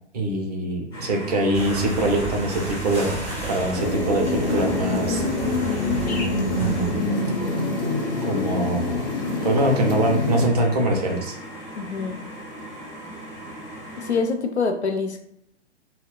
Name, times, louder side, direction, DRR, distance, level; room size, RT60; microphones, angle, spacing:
voice 1, 0.1-3.1 3.5-5.2 6.6-7.2 8.2-9.1 9.4-11.3, right 1 dB, 35° right, 1 dB, 0.6 m, -23 dB
sound 1, 0.9-14.2, equal, 10° left, 1.4 m, -38 dB
sound 2, 1.5-6.9, right 3 dB, 15° right, 1.1 m, -32 dB
sound 3, 3.8-10.5, left 2 dB, 40° left, 0.7 m, -25 dB
voice 2, 11.8-12.2 14.0-15.2, left 4 dB, 75° left, 5 dB, 0.5 m, -25 dB
3.9 x 2.0 x 2.3 m, 0.73 s
figure-of-eight pair, 115°, 34 cm